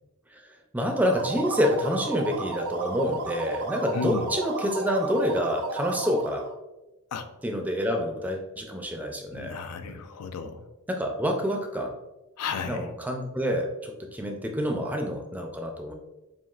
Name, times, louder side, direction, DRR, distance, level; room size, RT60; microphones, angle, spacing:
voice 1, 0.3-6.4 7.4-9.5 9.9-10.0 10.9-11.9 12.7-15.9, equal, 5° right, 3 dB, 0.4 m, -28 dB
sound 1, 0.8-6.5, right 3 dB, 85° right, 0.6 m, -33 dB
voice 2, 3.9-4.3 7.1-7.3 9.3-10.7 12.4-12.9, left 6 dB, 85° left, 9 dB, 0.4 m, -33 dB
7.2 x 2.4 x 2.4 m, 1.0 s
head